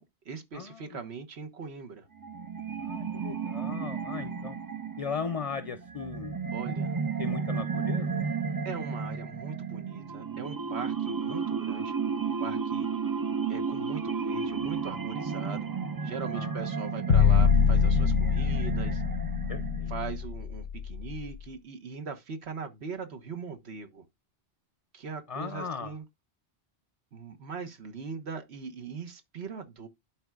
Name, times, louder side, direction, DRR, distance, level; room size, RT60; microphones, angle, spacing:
voice 1, 0.0-2.1 6.5-6.9 8.6-11.9 12.4-12.9 13.5-15.7 16.0-19.0 19.9-24.0 24.9-26.0 27.1-29.9, right 5 dB, 80° right, 1.5 m, -40 dB
voice 2, 0.5-1.0 2.8-4.6 5.0-6.3 7.2-8.2 16.3-16.7 19.5-19.9 25.3-26.0, left 5 dB, 40° left, 0.6 m, -37 dB
sound 1, 2.2-20.1, right 5 dB, 35° right, 0.3 m, -33 dB
sound 2, 17.1-21.2, left 7 dB, 90° left, 1.1 m, -24 dB
11.5 x 4.5 x 2.4 m
omnidirectional pair, 1.1 m